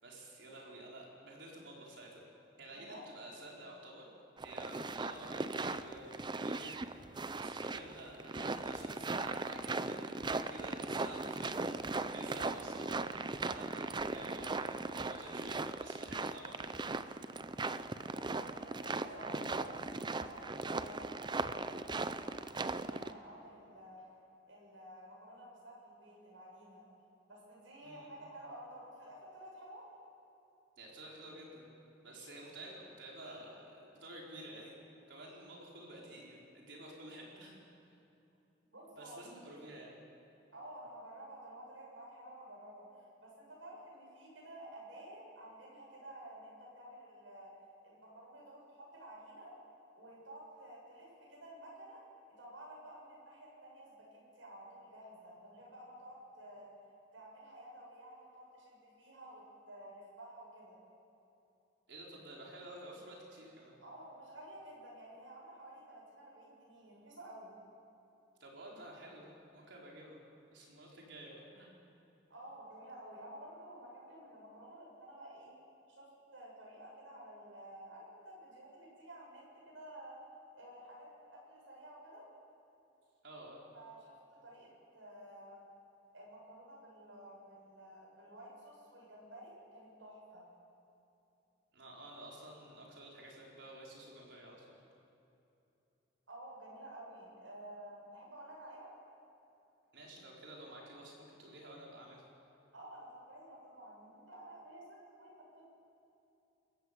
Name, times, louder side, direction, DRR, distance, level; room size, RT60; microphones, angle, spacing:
voice 1, 0.0-2.2 2.6-4.1 4.4-16.9 27.8-28.1 30.8-31.7 32.0-34.7 35.1-37.6 38.9-40.0 61.9-63.8 68.4-70.2 70.5-71.7 83.2-83.6 91.7-94.8 99.9-102.2, right 1 dB, 65° right, -3 dB, 5.2 m, -51 dB
voice 2, 2.7-3.0 18.2-19.8 20.2-24.1 24.5-26.8 27.3-29.9 38.7-39.7 40.5-42.9 43.2-47.5 47.8-49.5 49.9-52.0 52.3-56.7 57.1-60.8 63.8-67.6 72.3-75.6 75.9-76.1 76.3-80.2 80.5-82.3 83.7-84.2 84.4-84.7 84.9-85.6 86.1-90.5 96.3-98.9 102.7-105.6, right 1 dB, 80° right, -3 dB, 7.1 m, -52 dB
sound 1, 4.4-23.1, right 3 dB, 25° right, 0.6 m, -38 dB
27.0 x 14.5 x 7.7 m, 2.8 s
head